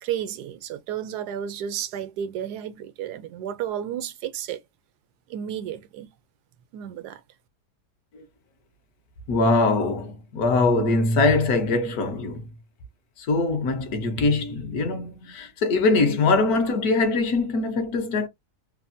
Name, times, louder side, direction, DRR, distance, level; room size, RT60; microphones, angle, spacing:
voice 1, 0.0-4.6 5.3-6.1 6.7-7.2, right 10 dB, 80° right, 1.1 m, -32 dB
voice 2, 9.3-12.5 13.3-18.3, left 3 dB, 70° left, 1.3 m, -22 dB
3.3 x 2.1 x 2.5 m
omnidirectional pair, 1.7 m